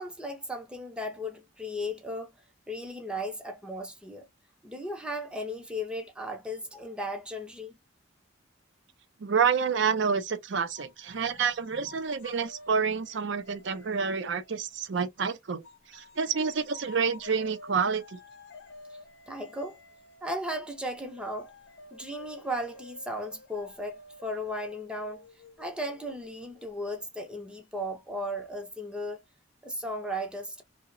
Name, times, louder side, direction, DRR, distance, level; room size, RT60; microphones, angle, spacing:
voice 1, 0.0-2.3 2.7-4.3 4.6-7.7 11.1-11.2 11.7-11.8 18.9-19.0 19.3-19.8 20.2-21.5 21.9-25.2 25.6-29.2 29.6-30.6, equal, 5° right, 0.5 m, -36 dB
voice 2, 9.2-15.6 15.9-18.2, right 6 dB, 65° right, 0.5 m, -28 dB
sound 1, 10.7-15.1 15.6-27.0, left 3 dB, 65° left, 0.7 m, -51 dB
2.7 x 2.0 x 2.4 m
head